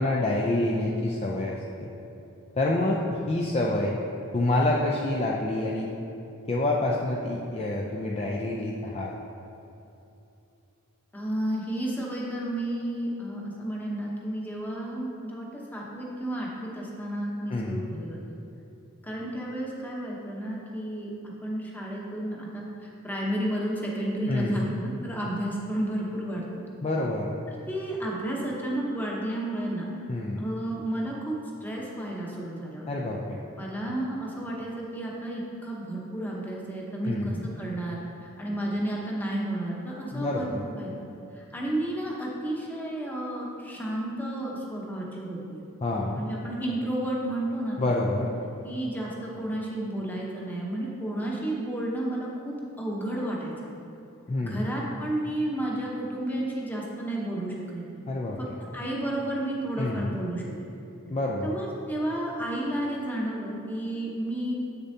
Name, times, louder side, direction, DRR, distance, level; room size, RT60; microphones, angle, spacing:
voice 1, 0.0-1.9 2.6-4.0 4.3-5.9 6.5-9.1 17.5-18.0 24.3-24.8 26.8-27.3 30.1-30.4 32.9-33.4 37.0-37.5 40.1-40.7 45.8-46.2 47.8-48.3 54.3-54.6 58.1-58.6 59.8-60.2 61.1-61.6, left 2 dB, 30° left, -2 dB, 0.4 m, -27 dB
voice 2, 11.1-18.3 19.0-21.1 21.4-26.6 27.7-30.0 30.4-31.4 31.6-32.9 33.6-38.0 38.4-40.5 40.8-40.9 41.4-45.6 46.1-47.8 48.6-53.7 54.4-57.8 58.4-58.5 58.7-60.4 61.4-64.5, right 1 dB, 10° left, -3 dB, 0.9 m, -32 dB
7.8 x 6.8 x 2.8 m, 2.9 s
head